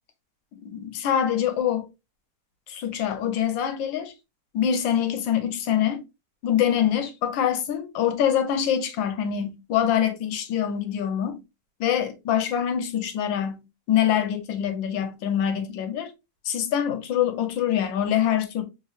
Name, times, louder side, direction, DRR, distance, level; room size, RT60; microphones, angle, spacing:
voice 1, 0.6-1.9 2.7-4.1 4.5-6.0 6.4-11.4 11.8-16.1 16.4-18.6, left 9 dB, 85° left, 1.4 m, -25 dB
3.3 x 3.0 x 2.3 m
omnidirectional pair, 2.0 m